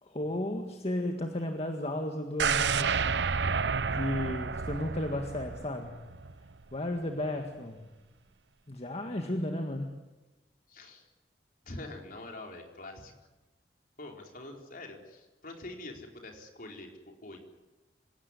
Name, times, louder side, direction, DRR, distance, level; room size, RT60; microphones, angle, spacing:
voice 1, 0.0-3.0 3.9-6.0 6.7-7.9 8.7-9.9, left 1 dB, 35° left, 4 dB, 1.8 m, -34 dB
sound 1, 2.4-6.4 6.7-6.8, right 5 dB, 75° right, 0.8 m, -30 dB
voice 2, 10.7-11.1 11.6-13.1 14.0-17.4, left 2 dB, 55° left, 2 dB, 4.3 m, -45 dB
26.5 x 17.5 x 9.9 m, 1.1 s
head